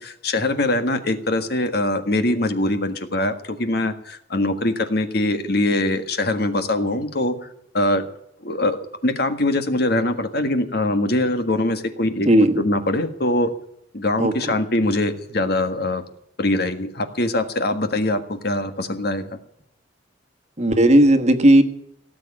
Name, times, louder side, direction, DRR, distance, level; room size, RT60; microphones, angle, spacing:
voice 1, 0.0-7.5 7.7-8.0 8.4-8.8 9.0-12.3 12.6-13.5 13.9-16.0 16.4-19.3, left 1 dB, 55° left, 8 dB, 1.6 m, -22 dB
voice 2, 12.2-12.6 14.2-14.3 20.6-21.6, right 1 dB, 35° right, 6 dB, 1.4 m, -14 dB
17.5 x 7.7 x 10.0 m, 0.75 s
head